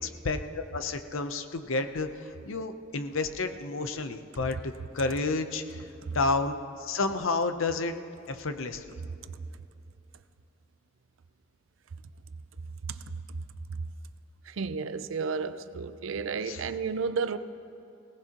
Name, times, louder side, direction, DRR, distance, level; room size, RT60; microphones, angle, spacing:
voice 1, 0.0-5.9 6.1-7.9 8.3-9.0 16.4-16.6, left 3 dB, 90° left, 0.8 m, -31 dB
voice 2, 14.5-17.4, right 5 dB, 80° right, 0.5 m, -32 dB
21.0 x 17.5 x 3.0 m
head